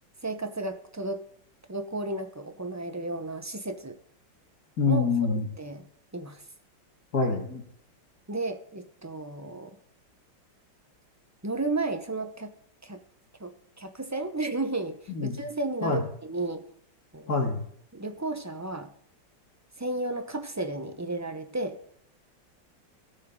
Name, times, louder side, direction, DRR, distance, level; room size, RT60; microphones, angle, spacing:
voice 1, 0.2-1.2 1.7-4.0 4.9-5.9 6.1-6.4 8.3-9.8 11.4-12.5 12.8-13.0 13.4-16.6 17.1-17.3 17.9-18.9 19.8-21.8, right 2 dB, 20° right, 7 dB, 0.5 m, -33 dB
voice 2, 4.8-5.5 7.1-7.6 15.1-15.3 15.8-16.0 17.3-17.6, left 4 dB, 55° left, 3 dB, 2.5 m, -25 dB
18.5 x 6.5 x 3.8 m, 0.66 s
omnidirectional pair, 2.0 m